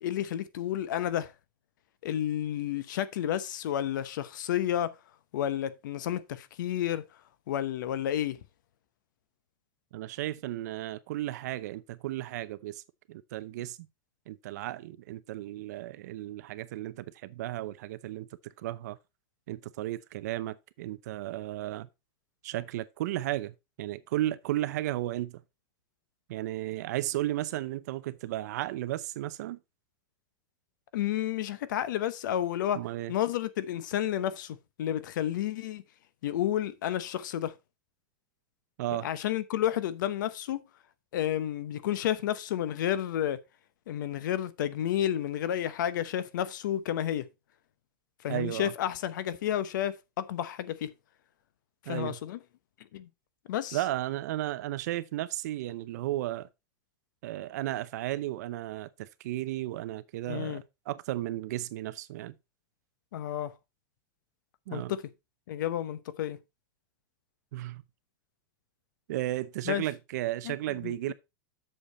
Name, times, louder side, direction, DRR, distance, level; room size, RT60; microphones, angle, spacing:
voice 1, 0.0-1.3 2.0-4.9 5.3-7.0 7.5-8.4 30.9-32.8 33.1-35.8 36.2-37.5 39.0-40.6 41.1-43.4 43.9-47.3 48.2-50.9 51.9-52.4 52.9-53.1 53.5-53.8 60.3-60.6 63.1-63.5 64.7-65.0 65.5-66.4 69.7-69.8 70.4-70.6 70.8-71.1, left 11 dB, 60° left, 0.9 m, -31 dB
voice 2, 9.9-12.8 13.1-13.8 14.3-19.0 19.5-21.9 22.4-25.4 26.3-29.6 32.7-33.1 38.8-39.1 48.3-48.7 51.9-52.2 53.7-56.5 57.2-62.3 64.7-64.9 67.5-67.8 69.1-71.1, right 15 dB, 50° right, 0.6 m, -34 dB
7.8 x 6.6 x 4.2 m
supercardioid pair, 175°, 12 cm